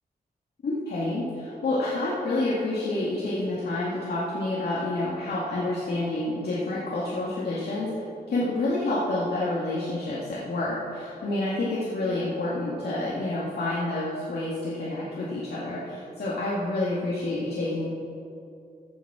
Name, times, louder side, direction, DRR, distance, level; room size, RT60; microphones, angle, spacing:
voice 1, 0.6-7.9 8.3-17.9, left 2 dB, 85° left, -7 dB, 1.8 m, -28 dB
15.5 x 7.2 x 4.8 m, 2.6 s
wide cardioid pair, 145°, 16 cm